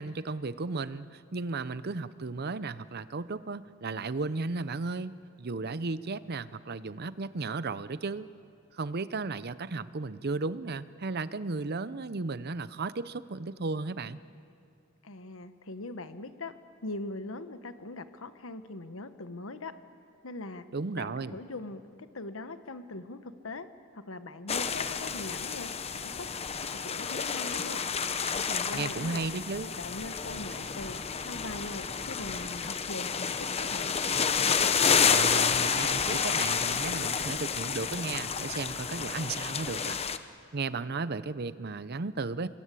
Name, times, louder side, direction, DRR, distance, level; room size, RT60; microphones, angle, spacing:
voice 1, 0.0-8.3 8.8-14.2 20.7-21.4 28.7-29.7 35.0-40.0 40.5-42.5, right 3 dB, 50° right, 15 dB, 0.7 m, -35 dB
voice 2, 15.0-16.5 16.8-19.7 20.2-20.6 21.0-23.7 23.9-26.3 26.7-27.8 28.5-29.2 29.7-33.9, left 2 dB, 75° left, 10 dB, 1.2 m, -41 dB
sound 1, 24.5-40.2, left 6 dB, 30° left, 0.8 m, -30 dB
25.0 x 22.0 x 8.4 m, 2.4 s
head